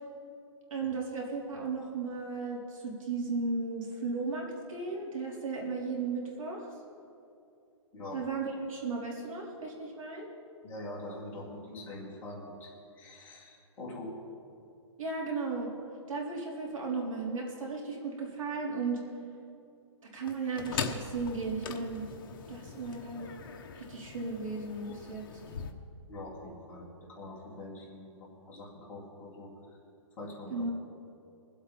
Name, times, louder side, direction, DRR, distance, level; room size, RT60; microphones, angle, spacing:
voice 1, 0.7-6.7 8.1-10.3 15.0-15.7 16.1-19.0 20.1-22.1 22.5-23.3 23.7-25.2 30.5-30.9, right 4 dB, 90° right, -2 dB, 4.0 m, -35 dB
voice 2, 10.6-14.1 26.1-29.8 30.2-30.6, left 1 dB, 10° left, -8 dB, 2.2 m, -44 dB
sound 1, 20.3-25.7, left 6 dB, 45° left, 1.0 m, -41 dB
24.0 x 8.1 x 4.3 m, 2.5 s
hypercardioid pair, 180°, 17 cm